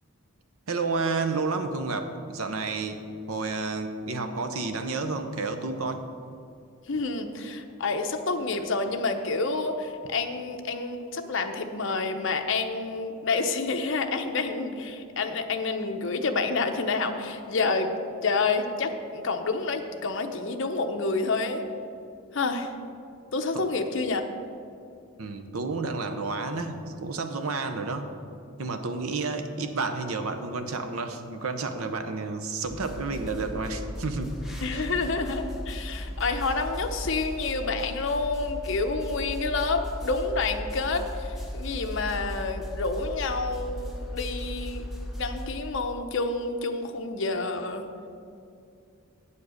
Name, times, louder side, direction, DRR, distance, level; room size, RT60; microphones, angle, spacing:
voice 1, 0.7-3.0 3.3-6.0 23.5-23.6 25.2-28.1 28.6-34.4 34.7-34.8, right 3 dB, 80° right, 7 dB, 0.8 m, -30 dB
voice 2, 6.9-17.9 18.2-21.6 22.3-22.7 23.3-24.3 34.6-44.9 45.2-47.8, left 3 dB, 60° left, 5 dB, 0.7 m, -28 dB
sound 1, 32.6-45.4, equal, ahead, 1.1 m, -36 dB
8.4 x 7.3 x 6.4 m, 2.5 s
head